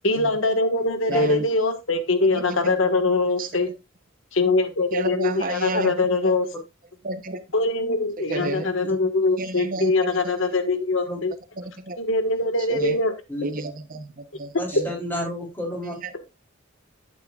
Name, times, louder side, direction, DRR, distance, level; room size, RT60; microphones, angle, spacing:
voice 1, 0.0-3.7 4.3-6.5 7.5-11.3 12.0-13.1, left 2 dB, 70° left, 9 dB, 1.5 m, -22 dB
voice 2, 1.1-1.4 2.3-2.7 3.4-3.5 4.9-5.9 7.0-7.4 8.3-8.7 9.4-10.1 11.9-12.0 12.7-13.0 13.4-14.1 14.4-14.5, right 2 dB, 40° right, 11 dB, 0.8 m, -30 dB
voice 3, 14.6-15.9, left 1 dB, 10° left, 0 dB, 3.4 m, -30 dB
11.5 x 8.5 x 2.4 m, 0.23 s
head